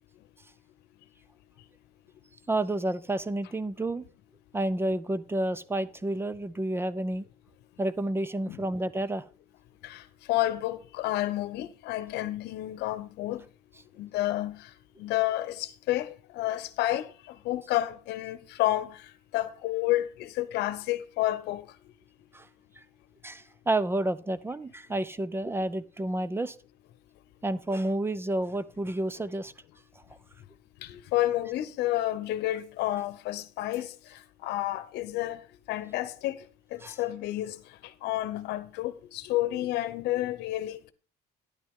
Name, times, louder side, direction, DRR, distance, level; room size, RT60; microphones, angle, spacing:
voice 1, 2.5-4.0 4.5-7.2 7.8-9.2 22.3-22.5 22.8-22.9 23.2-26.6 27.4-29.5 36.8-37.0, right 1 dB, 15° right, 0.5 m, -30 dB
voice 2, 9.8-13.4 14.0-14.7 15.0-19.0 19.3-21.7 30.8-33.9 34.4-35.4 35.7-36.4 36.7-37.6 38.0-40.9, left 15 dB, 85° left, 0.9 m, -30 dB
10.5 x 9.3 x 3.7 m
cardioid pair, 110°, 17 cm